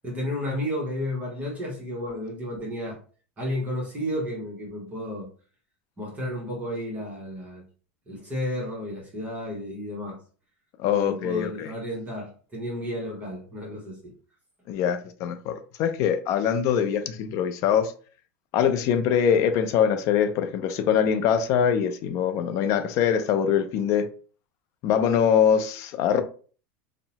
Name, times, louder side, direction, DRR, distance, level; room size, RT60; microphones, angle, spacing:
voice 1, 0.0-3.0 3.4-5.3 6.0-7.7 8.1-10.2 10.8-14.1, left 1 dB, 20° right, 0.9 m, -32 dB
voice 2, 10.8-11.7 14.7-17.9 18.5-24.1 24.8-26.2, left 8 dB, 50° left, 0.4 m, -23 dB
2.7 x 2.0 x 2.8 m
supercardioid pair, 125°, 7 cm